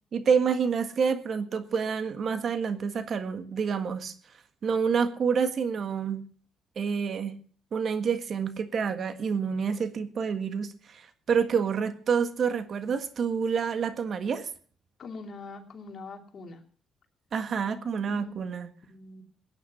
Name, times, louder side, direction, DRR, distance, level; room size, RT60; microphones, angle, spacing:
voice 1, 0.1-4.1 4.6-6.2 6.7-7.4 7.7-14.5 17.3-18.7, right 6 dB, 55° right, 10 dB, 1.6 m, -28 dB
voice 2, 15.0-16.6 18.1-18.4 18.9-19.2, left 3 dB, 50° left, 4 dB, 2.8 m, -43 dB
17.5 x 9.8 x 5.6 m, 0.43 s
cardioid pair, 90°, 0 cm